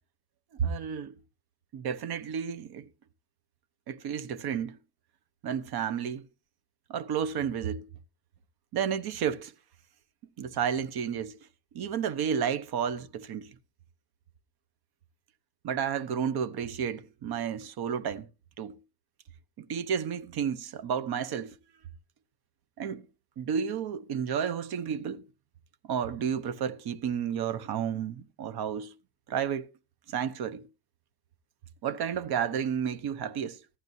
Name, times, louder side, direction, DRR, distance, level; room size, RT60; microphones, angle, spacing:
voice 1, 0.5-1.2 1.7-2.9 3.9-4.8 5.4-6.3 6.9-7.9 8.7-9.5 10.4-11.4 11.7-13.5 15.6-18.3 18.6-18.8 19.6-21.6 22.8-23.1 23.4-25.3 25.8-28.9 29.3-29.7 30.1-30.7 31.8-33.6, right 8 dB, 75° right, 0.9 m, -31 dB
14.0 x 11.0 x 2.7 m
cardioid pair, 105°, 38 cm